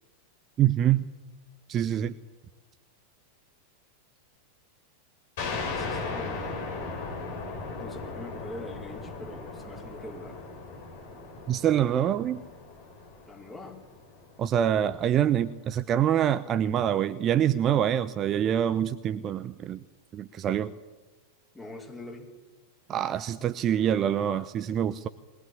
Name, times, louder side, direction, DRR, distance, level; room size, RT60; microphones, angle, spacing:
voice 1, 0.6-1.1 1.7-2.2 11.5-12.4 14.4-19.8 20.1-20.7 22.9-25.1, right 10 dB, 30° right, 13 dB, 0.7 m, -25 dB
sound 1, 5.4-14.6, left 3 dB, 50° left, 6.1 m, -37 dB
voice 2, 5.5-6.6 7.8-10.4 13.2-13.8 21.5-22.3, left 2 dB, 10° left, 0 dB, 4.8 m, -43 dB
22.0 x 18.5 x 9.9 m, 1.2 s
figure-of-eight pair, 90°, 0 cm